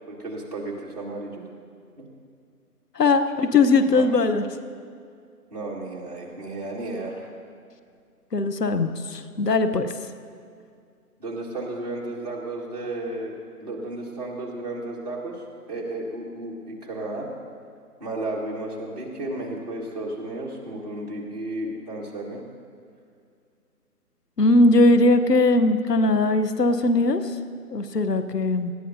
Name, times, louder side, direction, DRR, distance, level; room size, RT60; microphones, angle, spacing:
voice 1, 0.1-1.4 2.0-2.1 3.7-4.1 5.5-7.3 11.2-15.4 15.7-17.3 18.0-22.4, right 2 dB, 25° right, -5 dB, 1.8 m, -33 dB
voice 2, 3.0-4.4 8.3-9.9 24.4-27.2 27.7-28.7, left 2 dB, 85° left, 10 dB, 1.1 m, -20 dB
19.5 x 14.5 x 2.7 m, 2.3 s
figure-of-eight pair, 165°, 47 cm